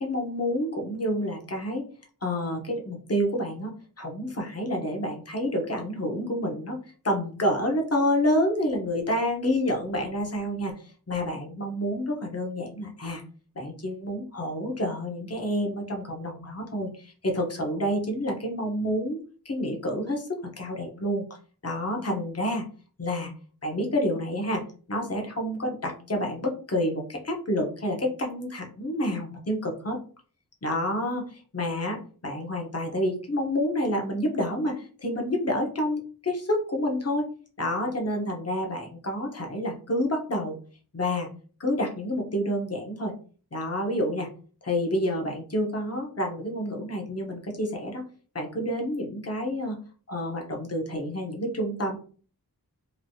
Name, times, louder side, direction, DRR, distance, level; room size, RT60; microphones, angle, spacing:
voice 1, 0.0-1.9 2.2-6.8 7.0-13.2 13.6-19.2 19.4-21.2 21.6-22.6 23.0-23.3 23.6-24.6 24.9-30.0 30.6-37.3 37.6-40.6 40.9-41.3 41.6-43.1 43.5-44.3 44.6-48.0 48.3-49.8 50.1-52.0, left 1 dB, 40° left, 1 dB, 0.9 m, -28 dB
3.2 x 2.6 x 2.6 m, 0.40 s
wide cardioid pair, 60°, 38 cm